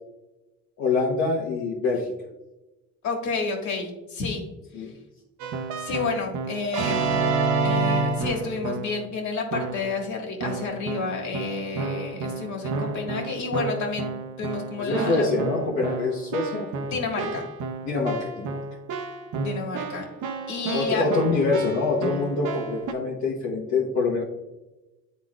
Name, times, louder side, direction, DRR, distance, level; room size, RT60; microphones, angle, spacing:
voice 1, 0.8-2.1 4.7-4.9 14.8-16.9 17.2-17.4 17.8-18.6 20.7-24.2, left 3 dB, 85° left, -6 dB, 1.2 m, -25 dB
voice 2, 3.0-4.4 4.8-4.9 5.8-14.1 14.4-15.3 16.9-17.5 19.4-20.0 20.5-21.0, left 4 dB, 70° left, 1 dB, 1.8 m, -30 dB
Keyboard (musical), 5.4-9.1 9.5-10.0 10.4-22.9, right 4 dB, 75° right, 0.7 m, -30 dB
11.0 x 4.0 x 2.4 m, 1.0 s
cardioid pair, 90°, 30 cm